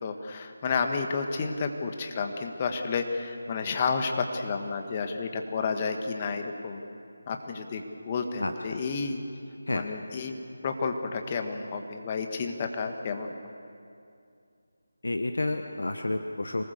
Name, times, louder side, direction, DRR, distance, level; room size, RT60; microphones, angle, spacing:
voice 1, 0.0-6.8 7.3-9.2 9.7-10.4 10.6-13.3, left 4 dB, 25° left, 5 dB, 1.6 m, -31 dB
voice 2, 8.4-8.8 9.7-9.9 15.0-16.6, left 2 dB, 70° left, 6 dB, 1.2 m, -30 dB
25.5 x 19.5 x 6.8 m, 2.5 s
figure-of-eight pair, 160°, 0 cm